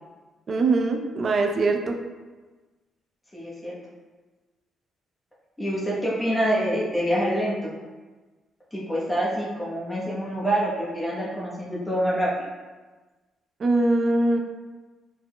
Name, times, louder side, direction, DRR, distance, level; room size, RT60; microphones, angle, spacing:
voice 1, 0.5-2.0 13.6-14.4, right 2 dB, 45° right, 3 dB, 0.5 m, -22 dB
voice 2, 3.3-3.8 5.6-7.7 8.7-12.5, equal, 10° left, -6 dB, 1.0 m, -26 dB
4.3 x 4.2 x 2.2 m, 1.3 s
cardioid pair, 90°, 0 cm